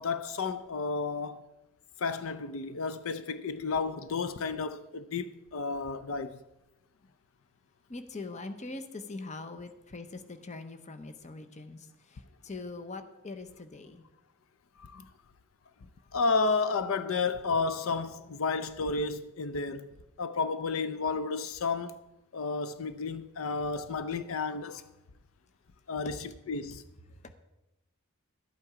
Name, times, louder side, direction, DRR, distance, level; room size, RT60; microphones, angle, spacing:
voice 1, 0.0-1.4 2.0-6.4 14.8-15.1 16.1-19.9 20.2-21.9 22.3-24.8 25.9-26.8, left 4 dB, 70° left, 0.5 m, -32 dB
voice 2, 7.9-14.0 26.0-26.2 27.2-27.3, left 3 dB, 35° left, 0.7 m, -42 dB
12.0 x 8.4 x 4.9 m
head